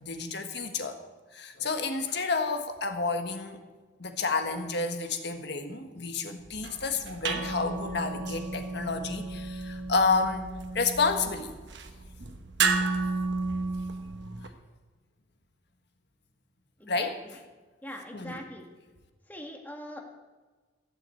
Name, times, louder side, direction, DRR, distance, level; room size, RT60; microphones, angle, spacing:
voice 1, 0.0-1.0 1.3-3.6 4.0-10.4 10.7-11.5 16.9-17.2 18.1-18.4, left 4 dB, 55° left, 6 dB, 1.5 m, -30 dB
sound 1, 6.4-14.5, right 4 dB, 60° right, 1.2 m, -32 dB
voice 2, 16.8-17.4 17.8-18.7 19.3-20.0, equal, 10° left, 2 dB, 1.7 m, -42 dB
15.5 x 7.5 x 8.5 m, 1.3 s
head